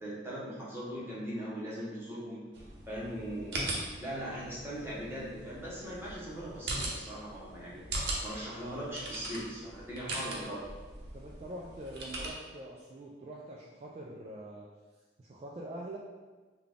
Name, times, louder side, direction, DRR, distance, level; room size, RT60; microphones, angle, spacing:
voice 1, 0.0-2.5 2.9-3.6 4.0-10.7, equal, 15° right, -7 dB, 0.9 m, -40 dB
sound 1, 2.5-12.3, right 2 dB, 65° right, 0.7 m, -40 dB
voice 2, 11.1-14.7 15.2-16.0, right 1 dB, 35° right, -3 dB, 0.3 m, -44 dB
3.8 x 2.3 x 3.5 m, 1.3 s
head